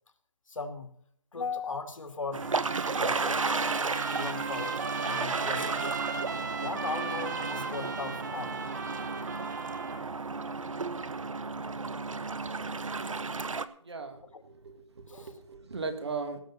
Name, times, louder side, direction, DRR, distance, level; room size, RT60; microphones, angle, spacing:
voice 1, 0.5-1.0 1.3-2.5 2.8-3.5 4.1-5.9 6.6-8.6 14.3-14.4 15.1-15.4, left 4 dB, 80° left, 7 dB, 2.5 m, -38 dB
sound 1, 2.3-13.6, right 4 dB, 80° right, 1.0 m, -33 dB
Trumpet, 2.4-10.0, right 5 dB, 35° right, 1.1 m, -38 dB
voice 2, 13.8-16.4, right 4 dB, 55° right, 7 dB, 2.7 m, -38 dB
18.0 x 7.4 x 5.6 m, 0.64 s
hypercardioid pair, 170°, 17 cm